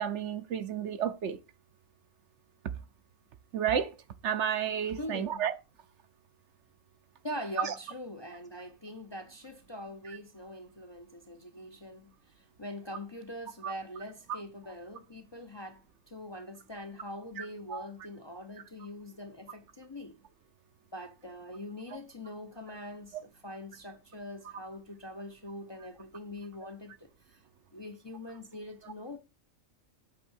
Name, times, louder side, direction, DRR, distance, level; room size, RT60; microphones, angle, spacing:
voice 1, 0.0-1.4 3.5-3.9 4.2-5.5 7.6-7.7 13.6-13.7 17.4-17.5 17.7-17.9, right 8 dB, 65° right, 0.9 m, -31 dB
voice 2, 5.0-5.5 7.2-20.2 20.9-27.4 27.7-29.2, left 1 dB, 25° left, 0.6 m, -43 dB
8.4 x 3.7 x 6.3 m
omnidirectional pair, 1.4 m